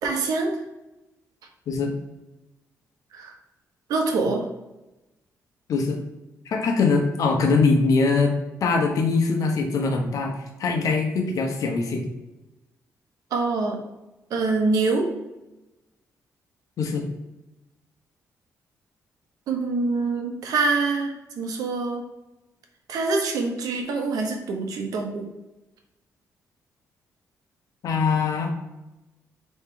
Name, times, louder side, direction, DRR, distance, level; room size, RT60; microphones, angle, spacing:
voice 1, 0.0-0.5 3.1-3.3 3.9-4.5 13.3-13.8 14.3-15.1 19.5-22.0 22.9-25.3, right 3 dB, 85° right, 3 dB, 0.9 m, -25 dB
voice 2, 6.5-8.3 8.6-12.1 16.8-17.1 27.8-28.5, left 4 dB, 70° left, 3 dB, 0.9 m, -22 dB
4.5 x 3.1 x 3.7 m, 0.99 s
cardioid pair, 105°, 6 cm